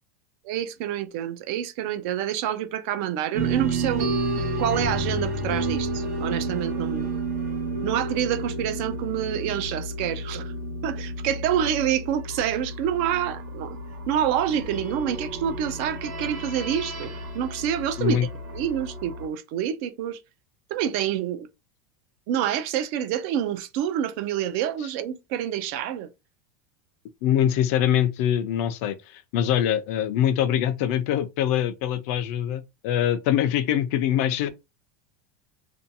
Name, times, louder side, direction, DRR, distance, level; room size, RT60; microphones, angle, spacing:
voice 1, 0.4-4.1 4.6-7.1 7.8-10.5 10.8-13.8 14.1-18.2 18.5-20.2 20.7-21.5 22.3-26.1, right 10 dB, 50° right, 0.4 m, -27 dB
sound 1, 3.3-19.3, right 2 dB, 90° right, 1.1 m, -31 dB
voice 2, 27.2-34.5, left 10 dB, 55° left, 0.4 m, -23 dB
2.6 x 2.2 x 2.6 m
supercardioid pair, 170°, 9 cm